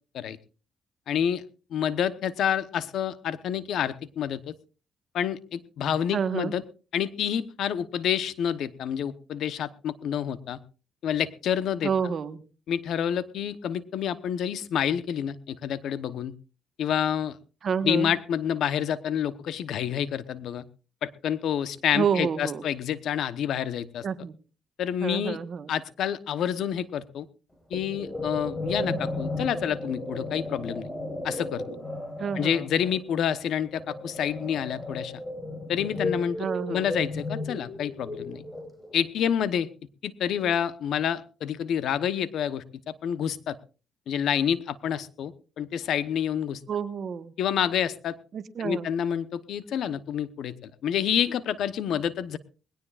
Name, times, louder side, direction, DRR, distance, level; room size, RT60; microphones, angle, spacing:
voice 1, 1.1-1.4 1.7-4.5 5.1-6.6 6.9-10.6 11.0-11.9 12.7-16.3 16.8-17.4 17.8-20.6 21.0-24.0 24.8-25.4 25.7-27.3 27.7-30.9 31.2-31.6 32.4-35.1 35.7-36.4 36.7-38.4 38.9-39.7 40.0-42.6 43.0-43.6 44.1-46.6 47.4-48.2 48.6-52.4, left 9 dB, 75° left, 14 dB, 0.9 m, -28 dB
voice 2, 6.1-6.5 11.8-12.4 17.6-18.1 21.9-22.6 24.0-24.3 25.0-25.7 32.2-32.7 36.4-36.9 46.7-47.3 48.3-48.9, right 6 dB, 55° right, 11 dB, 1.2 m, -29 dB
sound 1, 27.7-39.1, left 1 dB, 15° left, 4.5 m, -34 dB
20.5 x 17.5 x 2.4 m, 0.35 s
cardioid pair, 90°, 0 cm